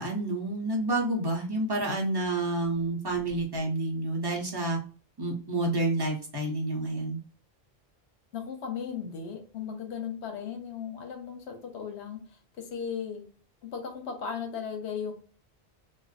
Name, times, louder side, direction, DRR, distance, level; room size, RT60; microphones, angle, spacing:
voice 1, 0.0-4.8 5.2-7.2, right 2 dB, 25° right, -1 dB, 0.6 m, -29 dB
voice 2, 8.3-13.2 13.6-15.1, left 7 dB, 85° left, 4 dB, 1.0 m, -36 dB
2.5 x 2.1 x 2.4 m, 0.39 s
omnidirectional pair, 1.1 m